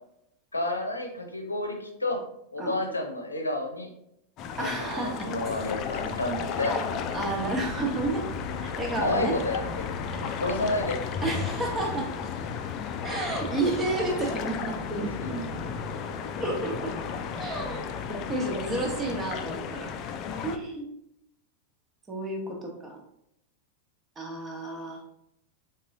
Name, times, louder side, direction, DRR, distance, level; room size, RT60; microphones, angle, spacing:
voice 1, 0.5-2.2 2.5-3.9 4.6-6.7 8.9-9.9 10.2-11.0 15.2-15.5, left 2 dB, 80° left, 3 dB, 0.6 m, -30 dB
sound 1, 4.4-20.6, left 6 dB, 35° left, 0.4 m, -34 dB
voice 2, 4.6-5.3 6.6-8.2 8.6-9.4 10.0-10.4 11.2-12.1 13.0-15.1 16.4-17.0 17.3-19.9 20.4-20.9 22.1-23.0 24.2-25.0, right 2 dB, 20° right, 1 dB, 1.0 m, -31 dB
3.9 x 3.8 x 2.6 m, 0.78 s
figure-of-eight pair, 90°, 0 cm